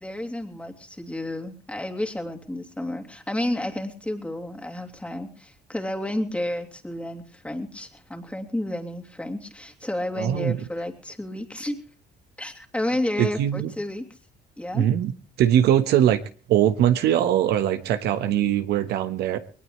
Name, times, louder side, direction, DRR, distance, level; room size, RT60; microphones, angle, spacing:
voice 1, 0.0-11.8 12.4-14.0 14.6-14.9, left 1 dB, 5° left, 3 dB, 2.9 m, -31 dB
voice 2, 10.2-10.6 13.2-13.7 14.7-15.1 15.4-16.2 16.5-19.4, right 11 dB, 75° right, 9 dB, 1.4 m, -21 dB
21.0 x 19.0 x 3.3 m, 0.39 s
cardioid pair, 110°, 17 cm